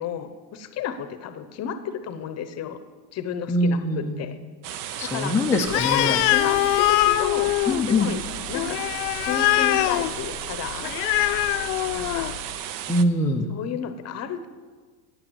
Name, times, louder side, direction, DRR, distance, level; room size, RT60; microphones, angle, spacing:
voice 1, 0.0-2.8 3.1-4.4 5.0-5.4 5.9-7.5 7.9-8.2 8.5-8.8 9.2-10.9 11.9-12.4 13.5-14.5, left 8 dB, 35° left, 10 dB, 0.8 m, -32 dB
voice 2, 3.5-4.2 5.0-6.2 7.7-8.1 12.9-13.5, left 1 dB, 5° left, -1 dB, 0.4 m, -23 dB
sound 1, 4.6-13.0, right 10 dB, 45° right, 0.6 m, -34 dB
Animal, 5.7-12.4, left 16 dB, 80° left, 0.6 m, -23 dB
8.8 x 8.8 x 8.0 m, 1.5 s
supercardioid pair, 140°, 47 cm